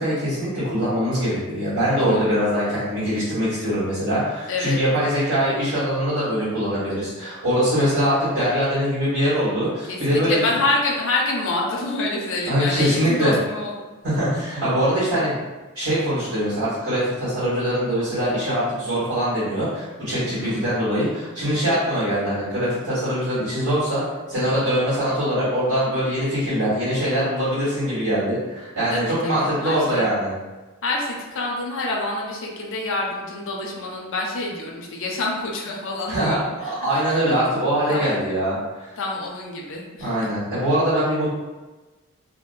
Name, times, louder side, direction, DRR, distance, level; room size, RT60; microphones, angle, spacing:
voice 1, 0.0-10.4 12.4-13.3 14.0-15.4 15.7-24.0 24.3-30.3 36.1-38.9 40.0-41.3, equal, 70° right, -13 dB, 1.3 m, -22 dB
voice 2, 1.9-2.3 4.5-4.8 9.9-13.8 20.4-20.7 28.9-30.1 30.8-36.7 37.1-37.2 37.9-38.1 39.0-40.3, left 2 dB, 60° left, -1 dB, 0.5 m, -27 dB
3.6 x 2.0 x 2.5 m, 1.2 s
head